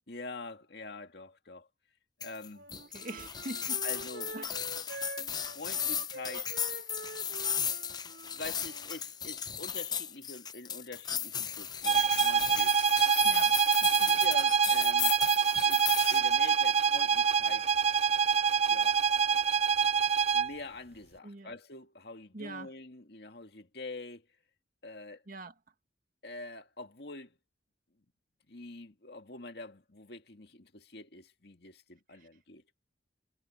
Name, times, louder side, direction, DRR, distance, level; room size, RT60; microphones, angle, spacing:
voice 1, 0.1-1.7 2.2-2.7 3.8-4.4 5.2-6.5 8.3-12.8 13.9-15.2 15.6-17.7 18.7-19.0 20.3-24.3 24.8-25.2 26.2-27.4 28.5-32.6, left 2 dB, 65° left, 2.2 m, -45 dB
sound 1, 2.2-16.2, left 8 dB, 25° left, 0.7 m, -35 dB
Wind instrument woodwind instrument, 2.5-8.9, right 2 dB, 70° right, 4.5 m, -46 dB
voice 2, 2.9-3.8 4.3-4.5 13.2-14.2 21.2-21.5 22.3-22.7 25.3-25.5, right 2 dB, 50° right, 2.1 m, -43 dB
sound 2, 11.8-20.6, right 7 dB, 35° right, 0.6 m, -26 dB
head